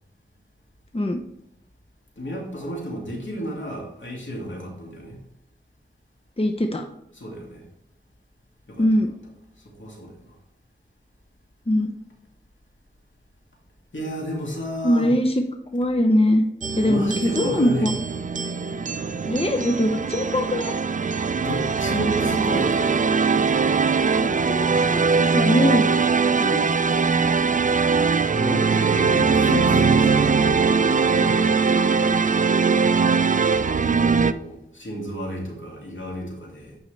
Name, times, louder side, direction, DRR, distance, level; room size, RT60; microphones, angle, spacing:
voice 1, 2.2-5.2 7.1-7.7 8.7-8.8 9.6-10.4 13.9-15.2 16.9-17.9 21.4-22.9 28.3-31.6 32.8-33.2 34.1-36.8, equal, 75° left, -2 dB, 2.3 m, -32 dB
voice 2, 6.4-6.9 8.8-9.1 11.7-11.9 14.8-15.4 15.7-16.4 16.8-17.9 19.2-20.8 23.0-23.1 24.2-26.7, left 1 dB, 30° left, 4 dB, 0.7 m, -22 dB
sound 1, 16.6-34.3, right 5 dB, 40° right, 0.4 m, -21 dB
9.0 x 5.4 x 3.3 m, 0.81 s
wide cardioid pair, 45°, 20 cm